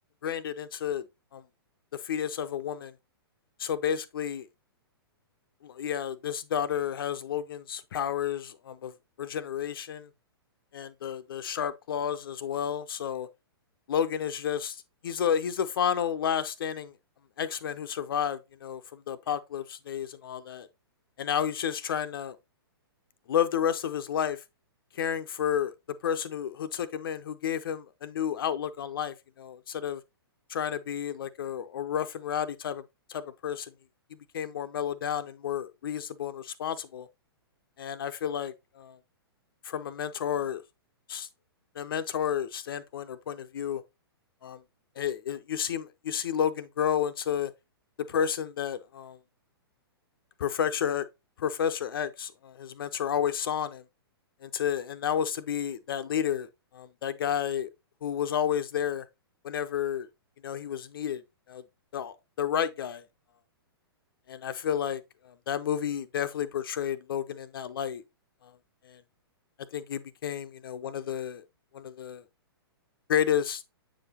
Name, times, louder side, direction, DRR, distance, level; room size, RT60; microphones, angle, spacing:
voice 1, 0.2-1.0 1.3-1.4 1.9-2.9 3.6-4.5 5.6-8.9 9.2-10.1 10.7-13.3 13.9-16.9 17.4-20.7 21.2-22.4 23.3-24.4 24.9-25.7 26.0-30.0 30.5-32.8 33.1-33.7 34.3-37.1 37.8-39.0 39.6-40.6 41.1-41.3 41.8-43.8 44.4-44.6 45.0-47.5 48.1-49.2 50.4-51.0 51.4-53.8 54.4-57.7 58.0-59.1 59.4-60.1 60.4-61.2 61.5-61.6 61.9-63.0 64.3-68.0 68.4-68.5 68.8-69.0 69.7-71.4 71.7-72.2 73.1-73.6, left 9 dB, 60° left, 0.5 m, -31 dB
7.5 x 4.9 x 2.8 m
figure-of-eight pair, 115°, 13 cm